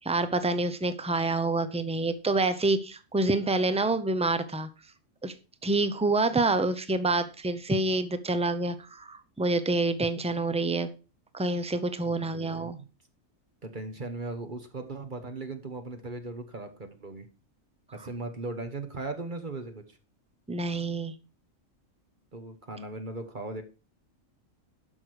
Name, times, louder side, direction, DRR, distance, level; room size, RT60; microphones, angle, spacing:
voice 1, 0.0-4.7 5.2-5.3 5.6-10.9 11.3-12.8 20.5-21.1, right 2 dB, 5° right, 11 dB, 0.6 m, -27 dB
voice 2, 12.0-12.9 13.6-17.3 17.9-20.0 22.3-23.6, right 3 dB, 40° right, 6 dB, 1.4 m, -38 dB
11.5 x 6.2 x 4.9 m, 0.33 s
omnidirectional pair, 1.4 m